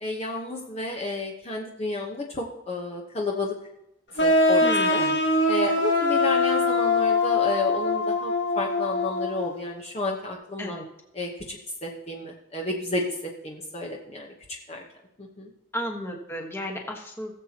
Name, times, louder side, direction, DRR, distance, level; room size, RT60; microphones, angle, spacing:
voice 1, 0.0-3.5 4.2-5.0 5.5-10.8 11.1-13.1 13.4-14.3 14.7-14.8 15.2-15.5, left 2 dB, 30° left, -1 dB, 1.1 m, -31 dB
sound 1, 4.2-9.7, left 2 dB, 65° left, 1.6 m, -23 dB
voice 2, 4.6-5.2 10.6-10.8 15.7-17.3, equal, 10° left, 1 dB, 1.4 m, -33 dB
19.5 x 7.5 x 3.0 m, 0.84 s
head